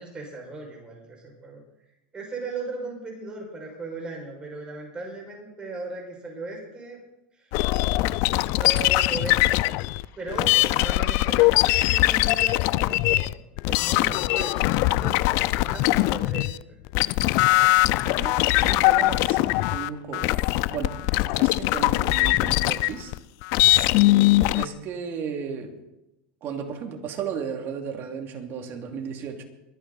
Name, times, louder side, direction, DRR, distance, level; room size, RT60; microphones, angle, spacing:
voice 1, 0.0-1.6 2.1-7.0 7.4-7.5 8.5-9.7 10.2-13.3 13.6-16.8, right 3 dB, 20° right, -1 dB, 6.0 m, -37 dB
sound 1, 7.5-16.6 16.9-24.7, left 19 dB, 55° left, 0.4 m, -21 dB
voice 2, 18.0-21.0 21.3-23.1 24.5-25.8 26.4-29.4, right 7 dB, 40° right, 4 dB, 2.5 m, -34 dB
22.5 x 9.5 x 4.1 m, 0.93 s
supercardioid pair, 125°, 5 cm